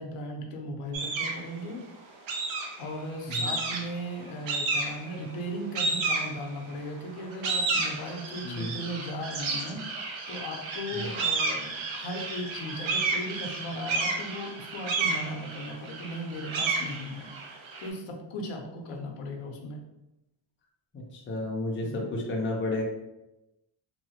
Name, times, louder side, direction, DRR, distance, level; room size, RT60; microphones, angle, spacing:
voice 1, 0.0-1.8 2.8-17.3 17.8-19.8 21.8-22.1, equal, 85° left, 1 dB, 0.7 m, -37 dB
sound 1, 0.9-1.5 2.3-2.9 3.3-4.0 4.5-5.1 5.7-6.7 7.2-17.9, right 3 dB, 70° right, 0.7 m, -31 dB
voice 2, 21.1-22.8, left 2 dB, 25° left, -2 dB, 0.5 m, -31 dB
3.0 x 2.0 x 2.8 m, 0.93 s
cardioid pair, 155°, 49 cm